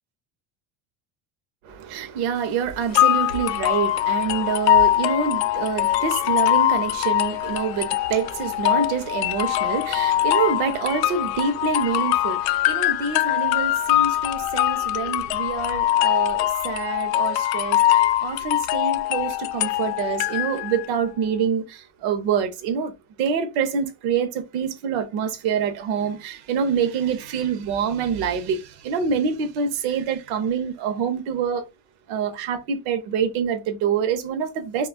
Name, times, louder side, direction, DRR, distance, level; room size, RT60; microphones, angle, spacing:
voice 1, 1.6-22.9 23.2-31.7 32.1-34.9, right 6 dB, 85° right, 1.0 m, -26 dB
sound 1, 2.9-20.9, left 13 dB, 60° left, 0.5 m, -22 dB
4.9 x 2.4 x 2.3 m
cardioid pair, 145°, 41 cm